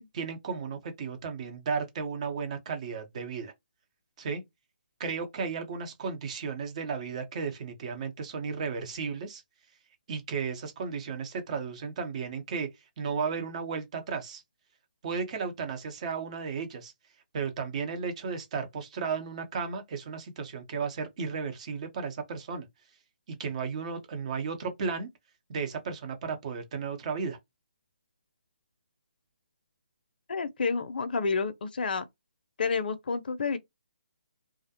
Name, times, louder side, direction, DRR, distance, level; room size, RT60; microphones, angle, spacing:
voice 1, 0.1-3.5 4.2-4.4 5.0-9.4 10.1-12.7 13.0-14.4 15.0-16.9 17.3-22.7 23.3-25.1 25.5-27.4, right 5 dB, 40° right, 0.8 m, -34 dB
voice 2, 30.3-32.0 32.6-33.6, left 5 dB, 60° left, 0.5 m, -29 dB
2.4 x 2.1 x 2.8 m
figure-of-eight pair, 150°, 6 cm